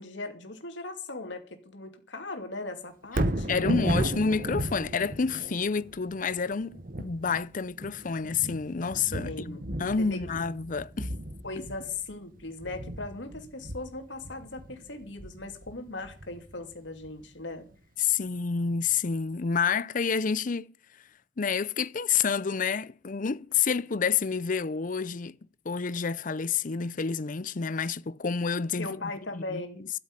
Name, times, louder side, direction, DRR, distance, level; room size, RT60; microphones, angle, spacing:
voice 1, 0.0-4.2 9.2-9.6 10.0-10.2 11.4-17.7 28.8-29.8, left 2 dB, 75° left, 2.6 m, -39 dB
Thunder, 3.0-17.2 17.7-17.8, right 1 dB, 50° right, 1.2 m, -35 dB
voice 2, 3.5-11.1 18.0-20.7 21.4-25.4 25.6-29.6, left 6 dB, 45° left, 0.6 m, -29 dB
13.0 x 7.7 x 9.7 m
head